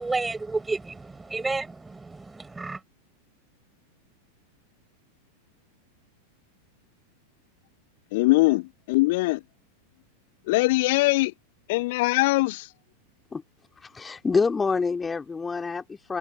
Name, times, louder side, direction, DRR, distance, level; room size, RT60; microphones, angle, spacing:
voice 1, 0.0-2.8, right 3 dB, 10° right, 6.4 m, -31 dB
voice 2, 8.1-9.4 10.5-11.3 11.7-12.7, left 21 dB, 50° left, 0.7 m, -22 dB
voice 3, 13.8-16.2, left 4 dB, 15° left, 2.9 m, -27 dB
figure-of-eight pair, 90°, 0 cm